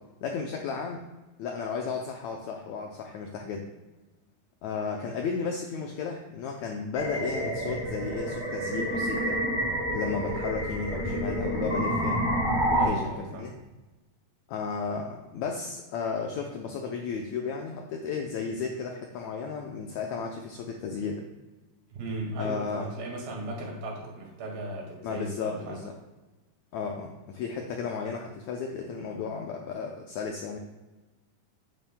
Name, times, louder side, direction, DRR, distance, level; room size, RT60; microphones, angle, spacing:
voice 1, 0.2-1.1 1.4-3.7 4.6-9.4 9.9-12.2 12.7-13.5 14.5-21.2 22.4-22.9 25.0-25.9 26.7-30.6, left 5 dB, 85° left, 2 dB, 1.6 m, -34 dB
sound 1, 6.9-12.9, equal, 10° right, 1.6 m, -28 dB
voice 2, 12.7-13.5 21.9-25.8, right 2 dB, 85° right, -2 dB, 3.7 m, -36 dB
9.1 x 8.9 x 2.2 m, 1.1 s
omnidirectional pair, 4.0 m